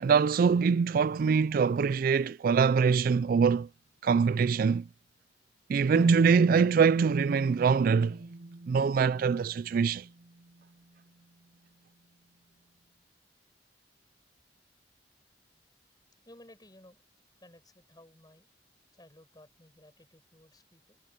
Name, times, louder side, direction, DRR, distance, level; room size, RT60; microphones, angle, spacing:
voice 1, 0.0-3.7 4.0-4.9 5.7-8.2 8.7-10.1, right 5 dB, 55° right, 0.3 m, -24 dB
sound 1, 5.9-9.9, right 2 dB, 80° right, 0.9 m, -35 dB
voice 2, 16.3-17.0 17.4-18.5 18.9-21.0, left 1 dB, 25° left, 7.4 m, -56 dB
head